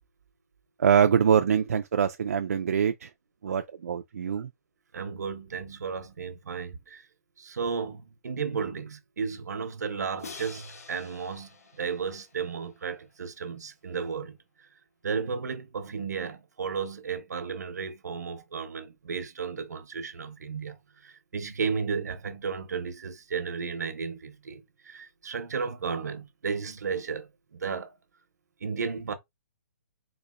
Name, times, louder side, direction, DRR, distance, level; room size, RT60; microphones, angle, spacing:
voice 1, 0.8-3.1 3.4-4.5, right 7 dB, 60° right, 0.3 m, -24 dB
voice 2, 4.9-7.0 7.4-14.4 15.0-20.8 21.0-27.9 28.6-29.1, right 5 dB, 80° right, 0.9 m, -34 dB
Crash cymbal, 10.2-13.2, left 5 dB, 65° left, 1.1 m, -47 dB
4.0 x 2.5 x 2.4 m
hypercardioid pair, 175°, 9 cm